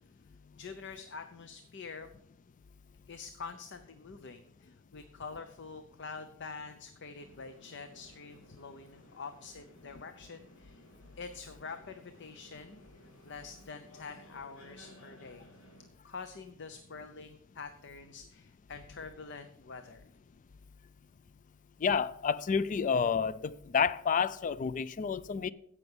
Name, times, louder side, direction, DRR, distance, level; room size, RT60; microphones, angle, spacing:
voice 1, 0.6-2.1 3.1-10.9 11.2-12.8 13.2-15.5 16.0-20.0, left 4 dB, 60° left, 0.7 m, -46 dB
sound 1, 7.1-15.9, equal, 75° left, 3.2 m, -58 dB
voice 2, 21.8-25.5, left 6 dB, 40° left, 0.4 m, -29 dB
16.0 x 6.1 x 5.4 m
head